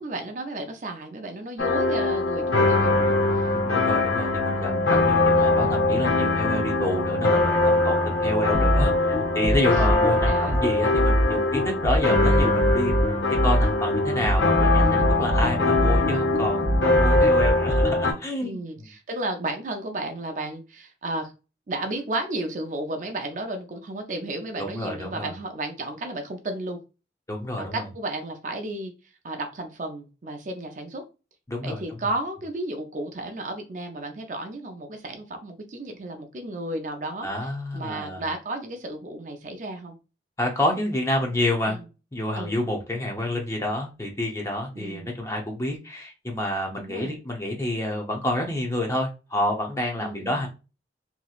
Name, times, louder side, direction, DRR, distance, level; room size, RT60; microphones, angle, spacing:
voice 1, 0.0-3.2 4.6-4.9 9.4-9.6 10.2-10.6 18.4-21.3 21.7-26.8 27.6-28.9 29.2-31.0 31.6-40.0 41.7-41.9 42.3-42.6 44.7-45.1 46.7-47.2 50.0-50.5, right 2 dB, 45° right, 5 dB, 0.5 m, -33 dB
sound 1, 1.6-18.1, left 2 dB, 85° left, 0.9 m, -22 dB
voice 2, 3.5-12.9 13.4-18.6 24.6-25.3 27.3-27.8 31.5-31.8 37.2-38.3 40.4-41.8 42.1-50.5, left 1 dB, 15° left, 1 dB, 0.7 m, -28 dB
sound 2, 8.5-17.9, right 1 dB, 55° left, 0.7 m, -23 dB
3.0 x 2.7 x 2.4 m, 0.30 s
head